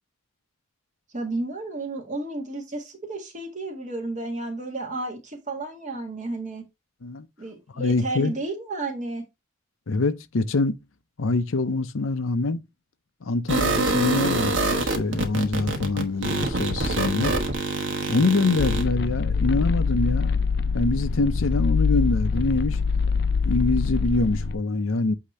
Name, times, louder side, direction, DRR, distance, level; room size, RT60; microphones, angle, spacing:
voice 1, 1.1-6.7 7.4-9.2, right 2 dB, 35° right, 1.7 m, -32 dB
voice 2, 7.7-8.3 9.9-10.8 11.2-12.6 13.2-17.4 18.1-20.4 20.7-22.8 23.4-25.2, left 3 dB, 90° left, 0.7 m, -25 dB
sound 1, 13.5-18.8, right 2 dB, 70° right, 1.3 m, -25 dB
sound 2, 18.6-24.5, left 5 dB, 55° left, 0.4 m, -24 dB
8.4 x 2.9 x 4.2 m
head